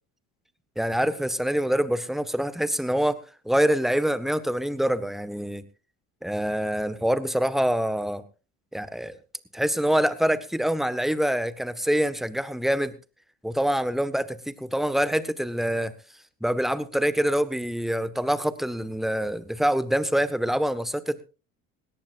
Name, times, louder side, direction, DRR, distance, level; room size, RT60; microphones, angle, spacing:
voice 1, 0.8-3.2 3.4-5.6 6.2-8.2 8.7-9.2 9.5-12.9 13.4-15.9 16.4-21.2, equal, ahead, 14 dB, 1.4 m, -25 dB
19.5 x 17.0 x 2.6 m, 0.32 s
hypercardioid pair, 70°, 40 cm